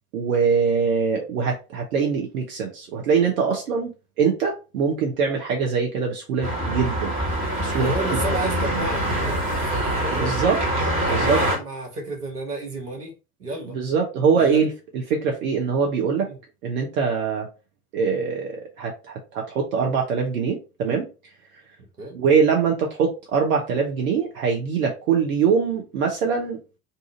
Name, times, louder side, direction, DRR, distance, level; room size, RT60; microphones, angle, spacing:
voice 1, 0.1-3.9 4.2-7.1 7.6-8.2 10.1-11.4 13.7-16.3 16.6-17.5 17.9-21.1 22.1-26.6, right 6 dB, 65° right, 0.8 m, -23 dB
sound 1, 6.4-11.6, right 1 dB, 25° right, 1.5 m, -24 dB
voice 2, 7.7-9.4 9.7-10.3 11.1-13.1 13.4-13.8 14.3-14.6 16.2-16.4 22.0-22.2, right 1 dB, 85° right, 1.1 m, -31 dB
2.7 x 2.4 x 3.8 m
figure-of-eight pair, 65°, 45 cm